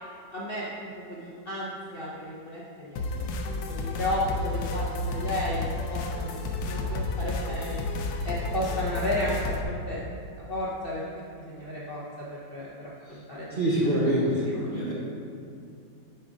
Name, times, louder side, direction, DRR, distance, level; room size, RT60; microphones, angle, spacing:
voice 1, 0.3-5.6 5.9-7.8 8.2-10.0 10.5-11.0 11.3-13.5 14.7-14.8, left 1 dB, 55° left, -6 dB, 0.6 m, -33 dB
sound 1, 3.0-9.6, left 2 dB, 70° left, 1.0 m, -31 dB
voice 2, 13.5-14.9, equal, 50° right, -7 dB, 0.6 m, -26 dB
7.3 x 3.7 x 4.9 m, 2.5 s
omnidirectional pair, 2.0 m